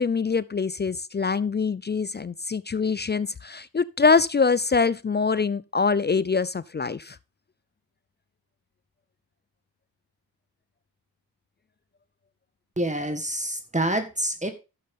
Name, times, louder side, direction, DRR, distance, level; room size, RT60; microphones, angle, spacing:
voice 1, 0.0-7.2, left 5 dB, 25° left, 0.5 m, -24 dB
voice 2, 12.8-14.5, right 1 dB, 15° right, 1.8 m, -27 dB
11.0 x 7.5 x 3.7 m
supercardioid pair, 45°, 42 cm